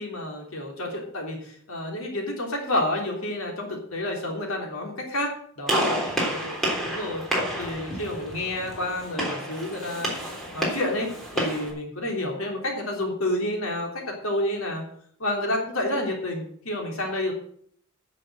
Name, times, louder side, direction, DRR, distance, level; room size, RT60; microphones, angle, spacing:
voice 1, 0.0-6.0 6.3-6.5 6.8-7.2 7.6-10.2 10.5-11.1 11.3-14.8 15.2-17.3, left 1 dB, 75° left, 1 dB, 3.4 m, -29 dB
Gunshot gunfire, 5.7-11.7, equal, ahead, 3.5 m, -29 dB
10.5 x 6.9 x 7.9 m, 0.62 s
head